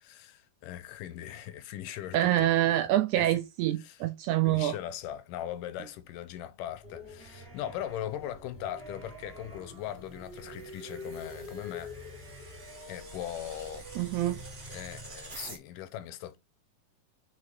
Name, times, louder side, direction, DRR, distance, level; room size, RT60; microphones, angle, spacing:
voice 1, 0.0-2.8 3.2-3.3 3.8-4.0 4.5-12.0 12.9-13.9 14.7-16.4, left 11 dB, 85° left, 2.2 m, -40 dB
voice 2, 2.1-4.8 14.0-14.4, right 13 dB, 80° right, 1.8 m, -26 dB
sound 1, 6.8-15.6, equal, 25° right, 1.3 m, -45 dB
4.8 x 4.8 x 4.4 m
omnidirectional pair, 3.9 m